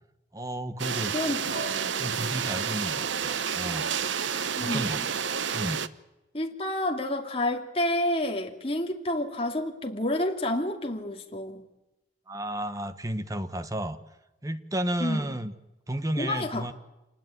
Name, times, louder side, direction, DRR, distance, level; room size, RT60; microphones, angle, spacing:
voice 1, 0.3-1.1 2.0-3.9 4.6-5.0 5.5-5.8 12.3-14.0 14.4-15.5 15.9-16.7, right 1 dB, 15° right, 11 dB, 1.2 m, -32 dB
sound 1, 0.8-5.9, right 7 dB, 75° right, 0.9 m, -30 dB
voice 2, 1.1-1.9 4.6-4.9 6.3-11.7 15.0-15.3 16.2-16.7, left 1 dB, 30° left, 3 dB, 2.6 m, -29 dB
27.5 x 19.5 x 9.3 m, 1.0 s
head